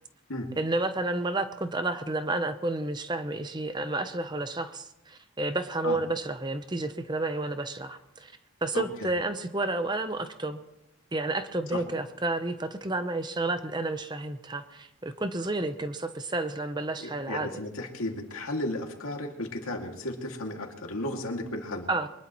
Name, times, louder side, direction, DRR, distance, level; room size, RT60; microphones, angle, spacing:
voice 1, 0.6-8.3 8.6-10.6 11.1-17.5 21.9-22.1, right 2 dB, 20° right, 9 dB, 0.8 m, -31 dB
voice 2, 8.7-9.1 11.7-11.8 17.0-21.9, left 1 dB, 85° left, 2 dB, 2.3 m, -34 dB
23.0 x 20.5 x 3.1 m, 0.91 s
head